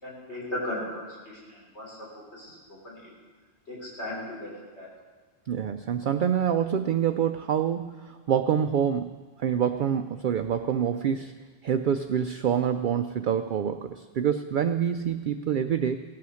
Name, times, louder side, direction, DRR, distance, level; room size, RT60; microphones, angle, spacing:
voice 1, 0.0-2.1 2.3-3.1 3.7-4.9, left 1 dB, 80° left, -4 dB, 4.1 m, -37 dB
voice 2, 5.5-11.3 11.6-16.0, right 8 dB, 60° right, 9 dB, 0.6 m, -26 dB
16.5 x 8.5 x 6.3 m, 1.5 s
omnidirectional pair, 1.1 m